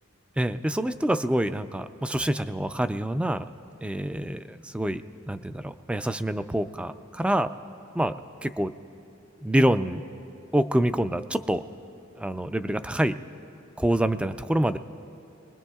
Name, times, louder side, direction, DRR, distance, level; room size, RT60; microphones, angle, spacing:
voice 1, 0.4-3.5 3.8-7.5 7.9-8.2 8.4-8.7 9.4-10.0 10.5-11.6 12.2-13.2 13.8-14.8, right 1 dB, 5° right, 11 dB, 0.3 m, -26 dB
24.5 x 20.5 x 2.3 m, 2.8 s
head